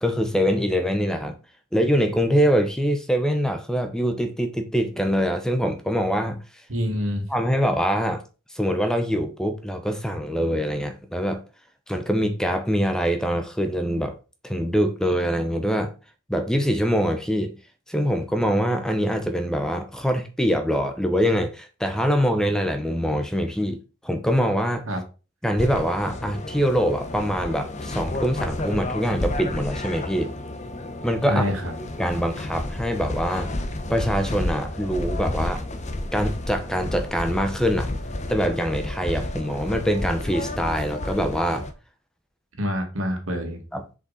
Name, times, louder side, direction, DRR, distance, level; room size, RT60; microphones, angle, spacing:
voice 1, 0.0-1.4 1.7-6.4 7.3-8.2 8.5-11.4 11.9-14.1 14.4-15.9 16.3-17.5 17.9-24.8 25.4-30.3 31.0-31.4 32.0-33.5 33.9-35.6 36.1-37.9 38.3-41.7 43.7-43.8, equal, 5° left, 0.7 m, -24 dB
voice 2, 6.7-7.3 24.9-25.0 31.3-31.7 42.6-43.6, equal, 85° right, 2.0 m, -26 dB
sound 1, 25.6-41.7, left 1 dB, 35° left, 0.8 m, -31 dB
6.7 x 5.1 x 4.1 m
head